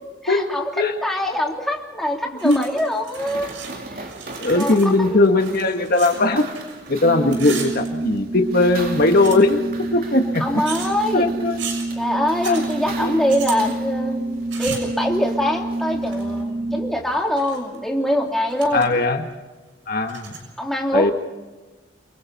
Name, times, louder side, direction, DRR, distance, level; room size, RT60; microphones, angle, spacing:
voice 1, 0.2-3.6 3.9-4.1 4.5-5.3 10.4-11.3 12.0-14.2 14.6-18.9 20.6-21.1, left 1 dB, ahead, 0 dB, 3.2 m, -24 dB
sound 1, 2.4-3.7 4.0-6.9 7.2-8.4 8.9-9.7 10.6-10.9 11.6-11.9 12.4-12.7 13.3-13.6 14.5-14.9 16.0-16.4 17.1-17.8 18.1-18.2 18.5-18.9 19.2-19.3 20.0-20.4, right 6 dB, 80° right, 6.7 m, -35 dB
sound 2, 3.1-16.4, right 3 dB, 50° right, 3.3 m, -40 dB
voice 2, 4.4-6.5 6.9-9.6 9.9-10.4 11.1-11.6 12.4-12.6 13.0-13.2 18.7-19.2 19.9-20.3 20.9-21.1, left 2 dB, 50° left, 5 dB, 1.6 m, -18 dB
Organ, 7.0-17.2, right 2 dB, 35° right, 1.2 m, -28 dB
29.5 x 24.0 x 4.2 m, 1.2 s
head